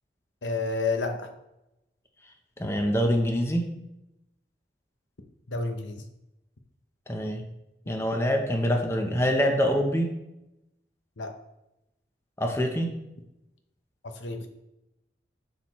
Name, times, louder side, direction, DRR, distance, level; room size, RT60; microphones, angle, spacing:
voice 1, 0.4-1.3 5.5-6.0 11.2-11.4 14.0-14.5, left 3 dB, 85° left, 5 dB, 0.9 m, -30 dB
voice 2, 2.6-3.7 7.1-7.5 7.9-10.1 12.4-12.9, equal, 15° left, 3 dB, 0.7 m, -25 dB
12.0 x 4.2 x 3.1 m, 0.90 s
head